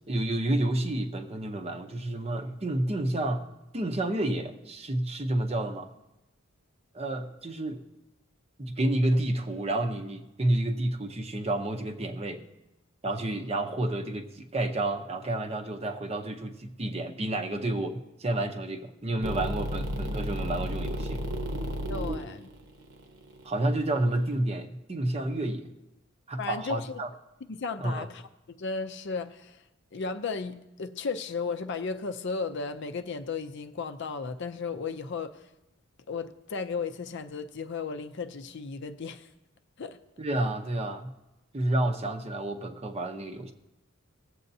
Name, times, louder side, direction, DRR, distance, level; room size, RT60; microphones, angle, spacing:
voice 1, 0.1-3.4 3.7-5.9 6.9-7.8 8.6-12.4 13.0-21.2 23.4-25.7 26.3-27.1 27.8-28.1 40.2-41.1 41.5-43.5, right 1 dB, 30° right, 6 dB, 0.7 m, -30 dB
sound 1, 19.2-24.4, equal, 60° right, 1.1 m, -33 dB
voice 2, 21.9-22.5 26.4-27.0 27.5-28.2 28.5-29.6 29.9-35.5 36.1-39.3 39.8-40.0, left 4 dB, 55° left, 9 dB, 0.5 m, -35 dB
18.0 x 7.7 x 2.7 m, 0.97 s
head